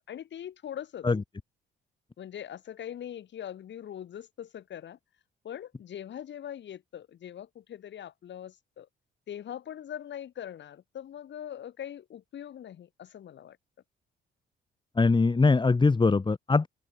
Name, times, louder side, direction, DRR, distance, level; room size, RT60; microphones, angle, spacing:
voice 1, 0.1-1.1 2.2-5.0 5.4-8.9 9.3-13.6, left 10 dB, 65° left, 4.3 m, -41 dB
voice 2, 15.0-16.7, left 3 dB, 25° left, 1.9 m, -22 dB
open air
cardioid pair, 90°, 20 cm